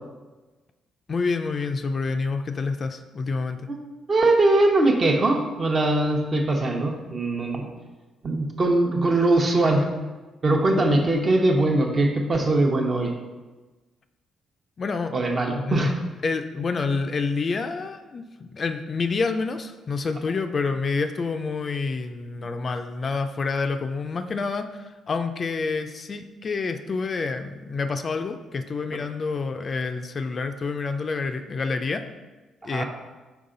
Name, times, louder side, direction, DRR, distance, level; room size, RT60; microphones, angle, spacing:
voice 1, 1.1-3.7 14.8-15.1 15.5-15.9 16.2-32.0 32.6-32.8, left 4 dB, 40° left, 8 dB, 0.4 m, -28 dB
voice 2, 4.1-7.7 8.2-9.9 10.4-13.1 15.1-15.9 32.6-32.8, right 2 dB, 40° right, 2 dB, 0.9 m, -21 dB
5.5 x 4.5 x 3.8 m, 1.2 s
cardioid pair, 90°, 0 cm